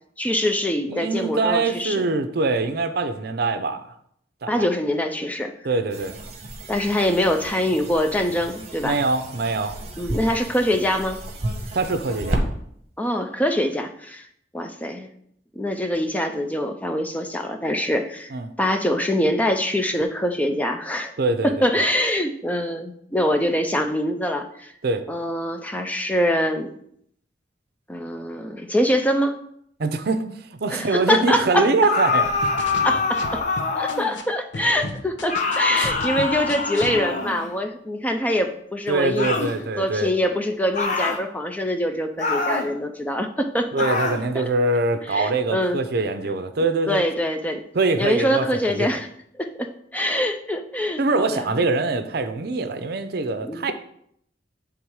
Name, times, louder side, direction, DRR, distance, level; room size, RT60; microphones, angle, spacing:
voice 1, 0.2-2.0 4.5-5.5 6.7-9.0 10.0-11.2 13.0-14.3 14.5-15.1 15.6-18.3 18.6-21.1 21.4-24.7 25.1-26.7 27.9-29.4 30.7-31.7 32.8-33.4 33.7-43.8 44.3-44.4 45.1-45.8 46.9-47.6 48.0-49.1 49.4-51.5 53.4-53.7, left 1 dB, 10° left, 5 dB, 0.5 m, -24 dB
voice 2, 0.9-3.9 4.4-4.7 5.6-6.2 8.8-9.8 11.7-12.4 18.3-18.5 21.2-21.9 24.8-25.0 29.8-30.2 30.5-32.5 35.7-35.9 38.9-40.1 43.7-47.0 47.7-49.0 51.0-53.7, right 3 dB, 60° right, 9 dB, 0.6 m, -23 dB
sound 1, 5.9-12.4, right 1 dB, 35° right, 1.0 m, -32 dB
sound 2, 31.9-34.2 35.3-37.5 39.2-39.6 40.7-41.2 42.2-42.7 43.8-44.2, left 4 dB, 45° left, 0.8 m, -24 dB
sound 3, 32.2-34.2 34.5-37.0, left 3 dB, 90° left, 0.8 m, -34 dB
8.5 x 3.6 x 4.7 m, 0.69 s
head